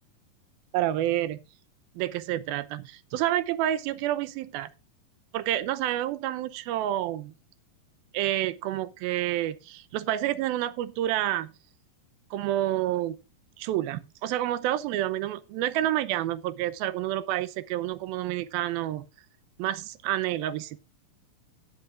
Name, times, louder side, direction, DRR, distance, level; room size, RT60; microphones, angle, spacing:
voice 1, 0.7-1.4 2.0-4.7 5.3-7.3 8.1-11.5 12.3-13.2 13.6-19.1 19.6-20.8, right 13 dB, 85° right, 2.6 m, -29 dB
17.5 x 7.9 x 2.5 m
omnidirectional pair, 4.2 m